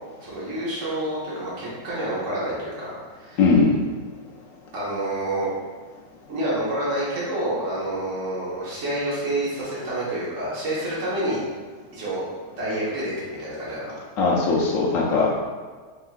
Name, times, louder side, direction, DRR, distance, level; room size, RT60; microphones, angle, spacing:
voice 1, 0.2-3.4 4.7-5.5 6.3-11.4 11.9-12.3 12.6-13.9, right 1 dB, 50° right, -8 dB, 1.5 m, -28 dB
voice 2, 3.4-3.8 14.2-15.3, left 4 dB, 70° left, -2 dB, 0.8 m, -19 dB
4.5 x 3.8 x 2.3 m, 1.5 s
omnidirectional pair, 1.9 m